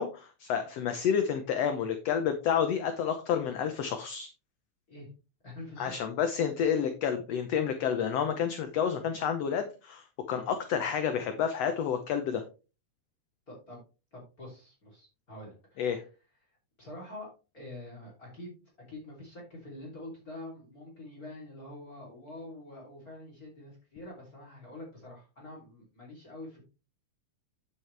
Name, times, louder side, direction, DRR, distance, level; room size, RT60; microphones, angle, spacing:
voice 1, 0.0-4.3 5.8-12.4 15.8-16.0, left 7 dB, 65° left, 7 dB, 1.7 m, -30 dB
voice 2, 5.4-6.0 13.5-13.8 14.1-16.1 16.8-18.6 18.9-26.6, left 1 dB, 25° left, -2 dB, 3.5 m, -46 dB
9.6 x 7.6 x 3.3 m, 0.32 s
omnidirectional pair, 3.6 m